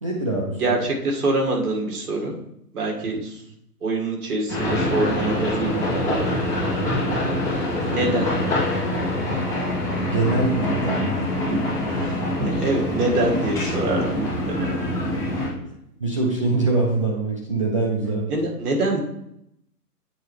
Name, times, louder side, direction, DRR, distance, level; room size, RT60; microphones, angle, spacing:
voice 1, 0.0-0.6 10.1-11.2 16.0-18.3, right 3 dB, 20° right, -2 dB, 0.5 m, -23 dB
voice 2, 0.5-2.3 2.7-3.4 3.8-6.3 7.9-8.3 11.5-11.6 12.0-14.8 18.3-19.0, right 2 dB, 65° right, 0 dB, 2.1 m, -25 dB
sound 1, 4.5-15.5, left 1 dB, 5° left, 2.1 m, -25 dB
8.6 x 4.3 x 3.3 m, 0.77 s
hypercardioid pair, 160°, 48 cm